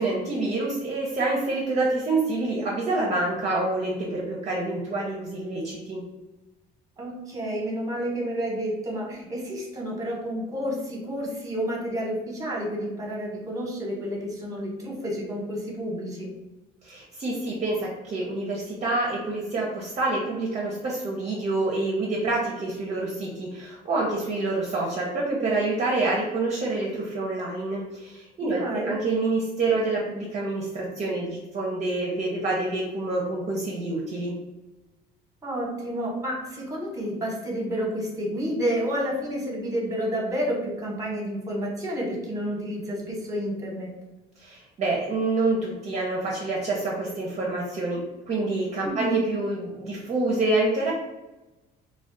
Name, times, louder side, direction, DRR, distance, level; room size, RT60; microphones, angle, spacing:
voice 1, 0.0-6.0 16.8-34.3 44.4-50.9, right 2 dB, 40° right, -3 dB, 0.6 m, -27 dB
voice 2, 7.0-16.3 28.4-28.9 35.4-43.9 48.8-49.2, equal, 20° right, -1 dB, 0.9 m, -30 dB
2.3 x 2.1 x 3.7 m, 1.0 s
cardioid pair, 110°, 17 cm